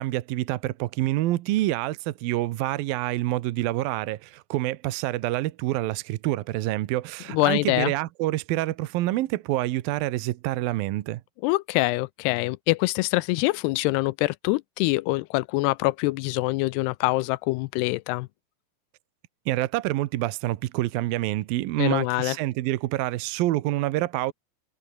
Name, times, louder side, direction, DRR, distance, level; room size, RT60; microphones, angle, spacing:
voice 1, 0.0-11.2 19.5-24.3, right 16 dB, 75° right, 2.4 m, -27 dB
voice 2, 7.3-7.9 11.4-18.3 21.8-22.4, left 21 dB, 85° left, 2.6 m, -24 dB
omnidirectional pair, 4.8 m